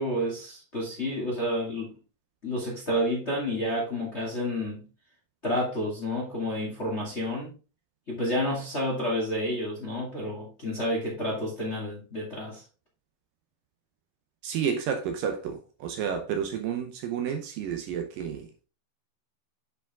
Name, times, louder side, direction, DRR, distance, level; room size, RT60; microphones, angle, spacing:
voice 1, 0.0-1.9 2.4-4.8 5.4-7.5 8.1-12.6, left 1 dB, 25° left, 1.6 m, -30 dB
voice 2, 14.4-18.5, right 7 dB, 75° right, 2.2 m, -31 dB
8.3 x 4.9 x 3.5 m
omnidirectional pair, 4.4 m